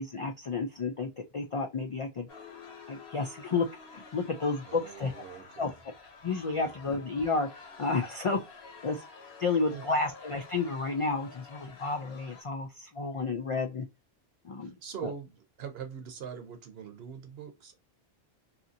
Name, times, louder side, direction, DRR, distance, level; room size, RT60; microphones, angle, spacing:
voice 1, 0.0-2.3 2.9-3.7 3.9-5.1 5.6-5.7 6.2-8.4 8.8-9.0 9.4-13.8 14.4-14.7, left 4 dB, 55° left, 0.3 m, -31 dB
sound 1, 2.3-12.4, left 4 dB, 75° left, 1.0 m, -50 dB
voice 2, 4.7-5.8 6.5-6.8 9.7-9.9 14.6-17.7, right 7 dB, 70° right, 1.0 m, -43 dB
2.8 x 2.5 x 2.5 m
omnidirectional pair, 1.1 m